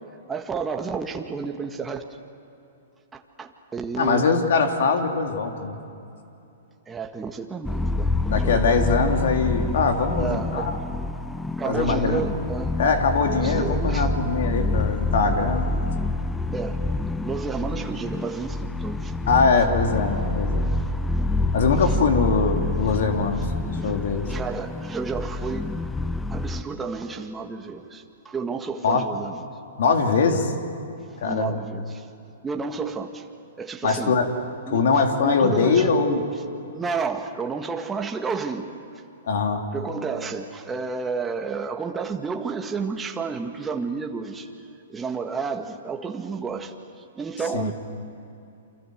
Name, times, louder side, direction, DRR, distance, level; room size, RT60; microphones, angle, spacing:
voice 1, 0.3-2.0 3.1-4.3 6.9-8.7 10.1-10.8 11.6-12.8 13.4-14.1 16.5-16.9 17.2-19.1 20.7-20.8 21.8-21.9 23.8-23.9 24.3-25.7 26.3-29.5 30.3-30.4 31.2-32.1 32.4-33.3 33.6-34.2 34.7-34.9 35.2-36.3 36.7-38.7 39.7-44.5 44.9-47.7, right 5 dB, 15° right, 4 dB, 1.7 m, -31 dB
voice 2, 4.0-5.8 8.3-10.8 11.6-12.2 12.8-15.7 19.3-20.6 21.5-23.5 23.8-24.3 28.8-29.0 29.8-30.5 31.2-31.6 33.8-34.3 34.7-36.2 39.3-39.6 47.5-47.7, left 4 dB, 70° left, 4 dB, 3.2 m, -22 dB
sound 1, 7.7-26.6, left 2 dB, 5° left, 0.7 m, -27 dB
29.0 x 25.5 x 7.9 m, 2.8 s
hypercardioid pair, 130°, 0 cm